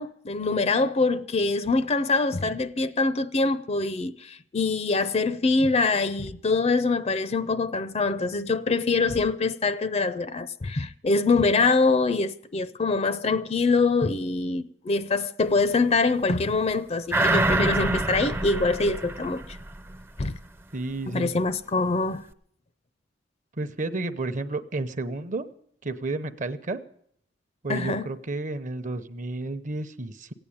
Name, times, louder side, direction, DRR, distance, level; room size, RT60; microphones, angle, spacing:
voice 1, 0.0-19.6 20.2-20.4 21.1-22.2 27.7-28.1, left 3 dB, 35° left, 0.5 m, -24 dB
sound 1, 17.1-20.0 20.4-20.5, right 2 dB, 10° right, 0.5 m, -26 dB
voice 2, 20.7-21.3 23.6-25.4 25.8-26.8 27.6-30.3, right 2 dB, 45° right, 0.8 m, -31 dB
16.0 x 8.9 x 8.6 m
head